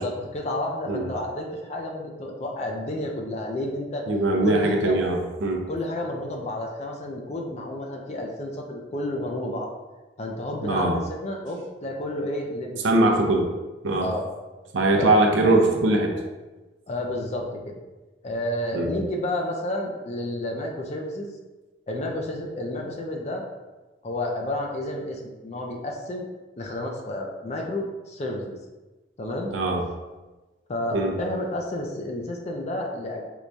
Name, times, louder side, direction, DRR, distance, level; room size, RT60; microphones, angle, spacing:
voice 1, 0.0-4.1 4.4-5.0 5.7-9.7 10.2-13.2 14.0-14.2 15.0-15.1 16.9-17.8 18.2-21.3 21.9-23.4 24.0-26.3 26.6-28.6 29.2-29.5 30.7-33.2, left 1 dB, 35° left, 1 dB, 0.4 m, -31 dB
voice 2, 4.1-5.7 10.6-11.0 12.8-13.5 13.8-14.1 14.7-16.1 18.7-18.9 29.5-29.8 30.9-31.1, right 2 dB, 80° right, 2 dB, 0.5 m, -21 dB
4.6 x 2.2 x 2.6 m, 1.2 s
head